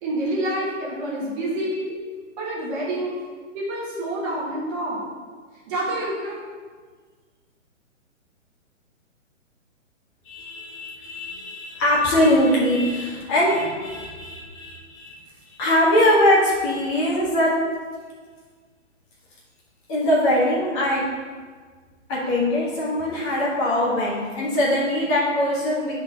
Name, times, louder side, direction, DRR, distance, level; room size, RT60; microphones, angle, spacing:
voice 1, 0.0-1.9 2.4-3.2 3.5-5.0 5.7-6.4, right 1 dB, 20° right, -6 dB, 1.4 m, -27 dB
voice 2, 10.2-15.1 15.5-17.5 19.9-21.0 22.1-26.0, left 1 dB, 25° left, -6 dB, 1.4 m, -22 dB
9.5 x 3.9 x 4.2 m, 1.6 s
figure-of-eight pair, 125°, 38 cm